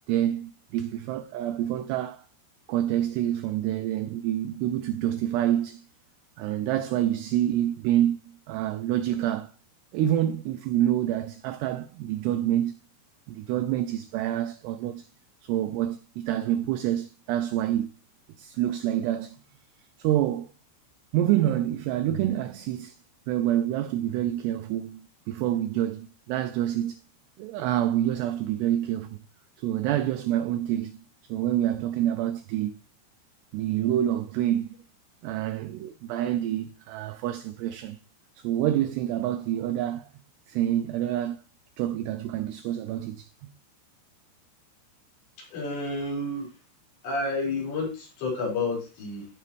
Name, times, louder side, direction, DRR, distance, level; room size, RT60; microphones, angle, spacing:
voice 1, 0.1-2.3 2.7-5.9 6.4-8.2 8.5-9.5 9.9-12.8 13.3-15.1 15.4-17.9 18.4-19.4 20.0-20.5 21.1-23.0 23.3-27.0 27.4-29.2 29.6-32.8 33.5-34.8 35.2-38.0 38.4-40.1 40.5-41.4 41.8-43.3, right 12 dB, 85° right, 2.4 m, -27 dB
voice 2, 45.4-46.5 47.0-49.3, left 2 dB, 65° left, 6.8 m, -30 dB
15.0 x 5.9 x 3.1 m
omnidirectional pair, 5.5 m